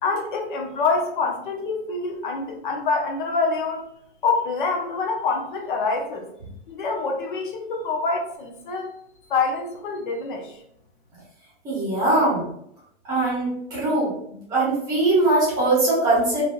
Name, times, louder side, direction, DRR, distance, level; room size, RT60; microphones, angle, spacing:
voice 1, 0.0-3.9 4.2-6.3 6.7-8.9 9.3-10.6, left 4 dB, 50° left, 1 dB, 0.6 m, -26 dB
voice 2, 11.6-12.5 13.1-14.1 14.5-16.4, right 2 dB, 10° right, -7 dB, 0.8 m, -21 dB
3.3 x 2.6 x 2.3 m, 0.73 s
supercardioid pair, 175°, 33 cm